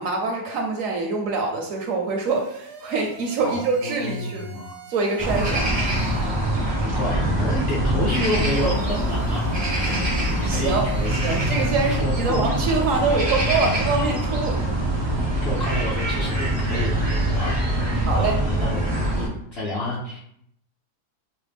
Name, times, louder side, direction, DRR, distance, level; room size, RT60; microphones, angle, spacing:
voice 1, 0.0-4.4 4.9-5.7 10.4-10.9 11.1-14.6 18.0-18.4, right 4 dB, 70° right, 2 dB, 0.8 m, -25 dB
sound 1, 2.2-6.5 8.2-12.0, right 5 dB, 90° right, 1.2 m, -44 dB
voice 2, 3.4-4.7 6.6-9.4 9.9-10.0 10.4-11.2 11.9-12.5 15.4-17.0 17.3-17.6 18.1-20.2, left 1 dB, 55° left, -5 dB, 0.7 m, -29 dB
sound 2, 5.2-19.3, right 1 dB, 40° right, 0.3 m, -24 dB
4.8 x 2.1 x 3.3 m, 0.72 s
omnidirectional pair, 1.7 m